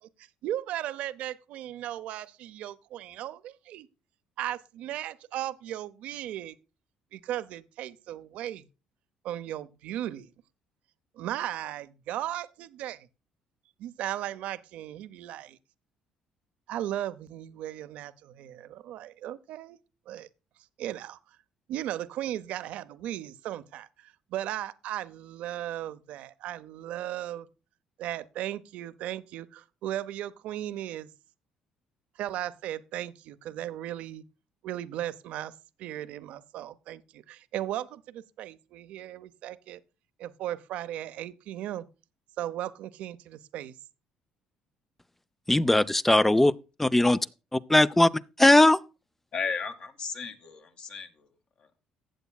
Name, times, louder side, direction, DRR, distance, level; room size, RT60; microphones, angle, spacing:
voice 1, 0.0-3.9 4.4-6.6 7.1-8.7 9.2-10.3 11.2-13.1 13.8-15.6 16.7-19.8 20.1-20.3 20.8-21.2 21.7-27.5 28.0-31.1 32.2-34.2 34.6-35.5 35.8-39.8 40.2-41.9 42.4-43.7, right 12 dB, 75° right, 0.6 m, -36 dB
voice 2, 45.5-46.5 46.8-47.2 47.5-48.1 48.4-48.8, left 1 dB, 10° left, 0.5 m, -19 dB
voice 3, 49.3-51.1, left 5 dB, 55° left, 1.9 m, -34 dB
15.0 x 8.1 x 2.3 m
supercardioid pair, 70°, 2 cm